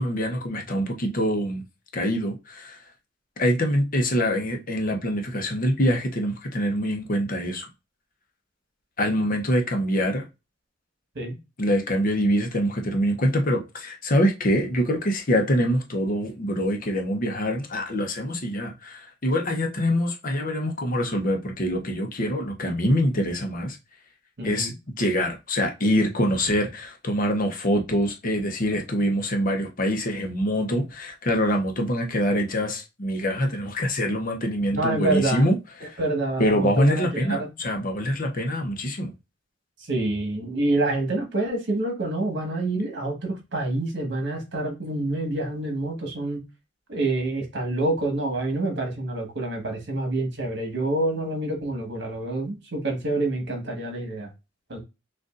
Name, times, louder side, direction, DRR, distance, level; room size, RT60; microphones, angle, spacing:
voice 1, 0.0-1.6 1.9-2.8 3.4-7.7 9.0-10.2 11.6-23.8 24.4-24.7 25.0-35.5 35.8-36.0 36.4-39.1, equal, 45° left, 0.8 m, -24 dB
voice 2, 24.4-24.7 34.7-35.5 36.0-37.5 39.9-46.4 46.9-54.3 54.7-54.8, right 2 dB, 60° right, 1.5 m, -27 dB
6.4 x 2.5 x 2.5 m
head